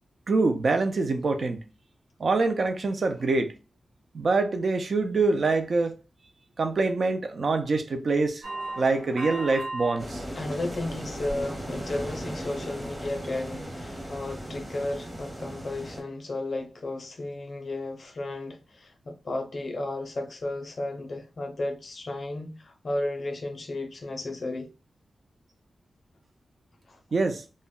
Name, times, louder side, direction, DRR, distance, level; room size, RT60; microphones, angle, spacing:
voice 1, 0.3-1.7 2.2-3.5 4.1-5.9 6.6-8.5 8.8-10.2 27.1-27.4, right 3 dB, 50° right, 0.3 m, -25 dB
sound 1, 8.4-10.0 10.4-11.0 11.4-11.6 12.1-12.2, right 2 dB, 70° right, 1.1 m, -36 dB
sound 2, 10.0-16.0, equal, 10° right, 0.7 m, -37 dB
voice 2, 10.4-24.7 26.9-27.0, left 2 dB, 45° left, 0.4 m, -33 dB
2.1 x 2.0 x 3.6 m
wide cardioid pair, 170°, 0 cm